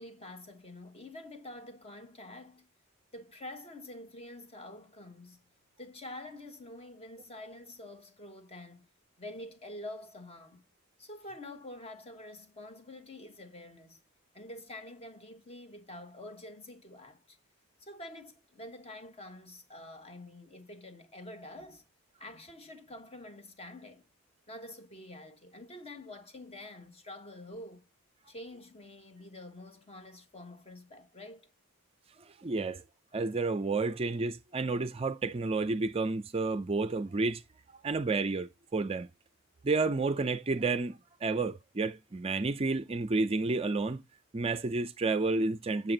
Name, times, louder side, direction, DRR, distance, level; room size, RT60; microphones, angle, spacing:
voice 1, 0.0-2.7 3.1-5.4 5.8-8.9 9.2-10.6 11.0-14.0 14.3-17.4 17.8-21.8 22.2-24.0 24.5-27.8 28.3-31.5, left 1 dB, 30° left, 1.2 m, -47 dB
voice 2, 32.4-32.8 33.1-37.4 37.8-39.1 39.6-44.0 44.3-45.9, right 3 dB, 25° right, 0.5 m, -30 dB
7.7 x 7.1 x 3.9 m
head